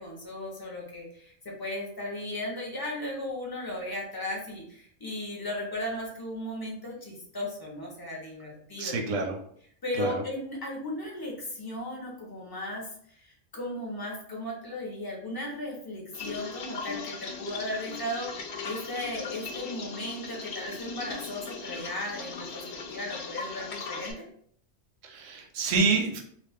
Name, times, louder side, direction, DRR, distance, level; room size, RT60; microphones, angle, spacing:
voice 1, 0.0-9.0 9.8-12.9 13.2-13.3 13.5-18.3 18.6-24.2, left 1 dB, 25° left, -2 dB, 0.6 m, -36 dB
voice 2, 8.8-9.4 10.0-10.1 25.0-26.2, right 4 dB, 90° right, 3 dB, 1.0 m, -27 dB
sound 1, 16.1-24.1, left 4 dB, 65° left, 0.8 m, -39 dB
2.5 x 2.3 x 3.4 m, 0.62 s
omnidirectional pair, 1.3 m